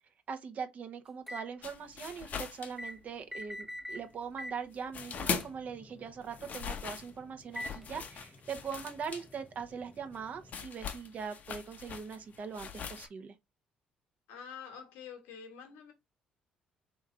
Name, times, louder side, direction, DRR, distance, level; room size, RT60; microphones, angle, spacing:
voice 1, 0.3-13.4, right 6 dB, 50° right, 0.9 m, -41 dB
sound 1, 1.3-1.5 2.8-3.0 3.3-4.0 4.4-4.6 5.4-5.5 7.6-7.8, left 1 dB, 5° right, 0.7 m, -41 dB
sound 2, 1.6-3.4 3.7-5.7 6.1-13.1, left 6 dB, 55° left, 0.8 m, -41 dB
sound 3, 4.9-10.6, left 1 dB, 20° left, 1.0 m, -59 dB
voice 2, 14.3-15.9, left 7 dB, 80° left, 1.2 m, -47 dB
3.4 x 3.1 x 3.6 m
hypercardioid pair, 55°, 3 cm